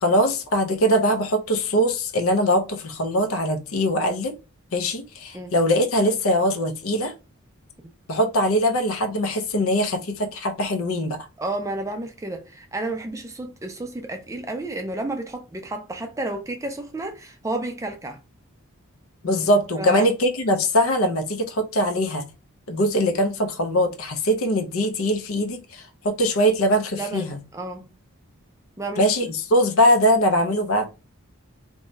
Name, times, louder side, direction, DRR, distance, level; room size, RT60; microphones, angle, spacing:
voice 1, 0.0-4.3 4.7-7.1 8.1-11.2 19.2-22.3 22.7-27.4 29.0-30.9, equal, 75° left, 0.6 m, -22 dB
voice 2, 11.4-18.2 19.8-20.1 26.9-27.9 28.8-29.1, right 2 dB, 15° right, 0.3 m, -31 dB
2.6 x 2.2 x 3.0 m
head